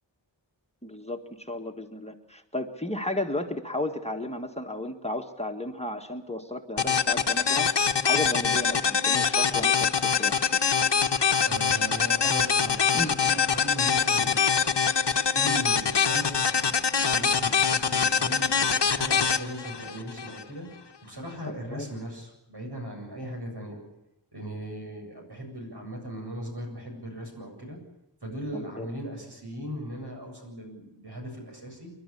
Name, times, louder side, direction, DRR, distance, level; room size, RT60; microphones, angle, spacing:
voice 1, 0.8-7.7 8.0-10.6 12.9-13.4 21.7-21.9 28.5-28.9, left 1 dB, 15° left, 3 dB, 1.8 m, -34 dB
sound 1, 6.8-20.4, left 6 dB, 65° left, 1.2 m, -24 dB
voice 2, 11.4-20.7 21.0-23.8 24.3-27.8 28.2-31.9, equal, 60° right, 1 dB, 7.8 m, -38 dB
28.5 x 12.0 x 9.9 m, 0.90 s
wide cardioid pair, 55°, 45 cm